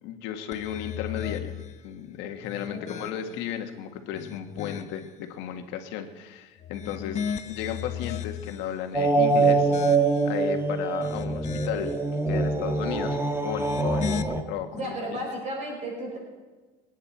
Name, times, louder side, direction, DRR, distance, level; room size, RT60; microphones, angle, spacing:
voice 1, 0.0-1.5 1.8-11.9 12.3-15.0, left 9 dB, 75° left, 6 dB, 1.7 m, -34 dB
sound 1, 0.5-1.8 2.4-3.5 4.0-5.1 6.6-8.7 9.2-10.4 10.8-12.0 13.4-14.2, left 8 dB, 40° left, 0.8 m, -36 dB
voice 2, 2.7-3.1 14.7-16.2, right 1 dB, 40° right, -1 dB, 5.7 m, -34 dB
sound 2, 8.9-14.4, right 3 dB, 15° right, 1.7 m, -24 dB
28.0 x 9.5 x 4.3 m, 1.3 s
supercardioid pair, 95°, 18 cm